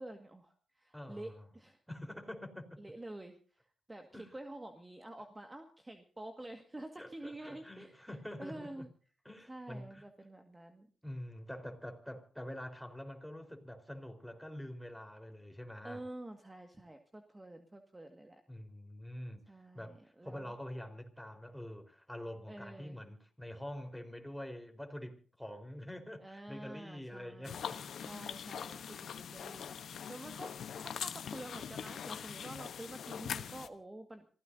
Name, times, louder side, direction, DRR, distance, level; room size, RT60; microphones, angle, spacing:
voice 1, 0.0-1.8 2.8-3.6 3.9-8.1 8.4-8.9 9.5-10.9 15.8-18.4 19.5-20.5 22.5-23.0 26.2-27.6 28.0-34.3, right 1 dB, 20° right, 5 dB, 1.8 m, -48 dB
voice 2, 0.9-1.4 1.9-2.8 4.1-4.3 7.0-8.9 9.2-10.0 11.0-16.0 18.5-19.4 19.7-20.0 20.2-27.9 30.0-30.1, left 1 dB, 5° left, 4 dB, 4.3 m, -46 dB
sound 1, 27.4-33.7, left 8 dB, 70° left, 1.0 m, -42 dB
26.5 x 16.0 x 2.7 m, 0.42 s
supercardioid pair, 50°, 0 cm